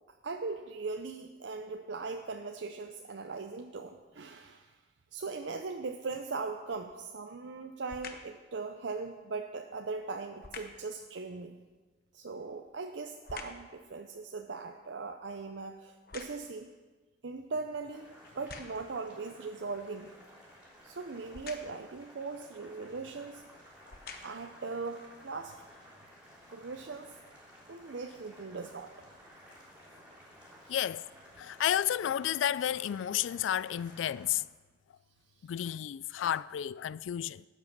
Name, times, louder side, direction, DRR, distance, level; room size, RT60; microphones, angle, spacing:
voice 1, 0.2-4.7 5.1-11.6 12.1-16.7 17.2-18.1 18.4-20.1 20.8-23.4 24.2-25.6 26.5-27.1 27.7-28.9 30.7-30.8, right 4 dB, 70° right, 0.6 m, -39 dB
sound 1, 6.7-7.1 7.9-8.4 10.4-10.9 12.3-13.7 14.2-16.7 17.4-17.5 18.2-19.0 21.3-21.9 22.9-23.1 23.7-24.6 25.2-25.3, left 4 dB, 50° left, 1.0 m, -48 dB
Boiling, 17.9-34.3, equal, 5° right, 3.4 m, -56 dB
voice 2, 30.7-31.1 31.4-34.5 35.4-37.4, left 10 dB, 85° left, 0.3 m, -31 dB
12.5 x 8.2 x 6.0 m
head